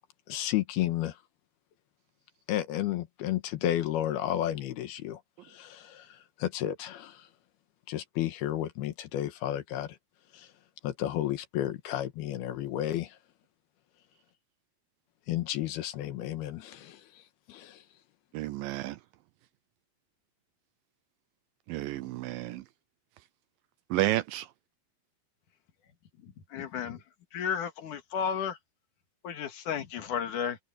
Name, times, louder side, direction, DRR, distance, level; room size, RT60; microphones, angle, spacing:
voice 1, 0.3-1.2 2.5-7.3 7.9-10.0 10.3-10.5 10.8-13.2 15.3-17.8, left 12 dB, 85° left, 3.3 m, -32 dB
voice 2, 18.3-19.0 21.7-22.6 23.9-24.4, right 16 dB, 80° right, 2.1 m, -31 dB
voice 3, 26.5-27.0 27.3-28.6 29.2-30.6, left 7 dB, 60° left, 3.2 m, -33 dB
omnidirectional pair, 4.4 m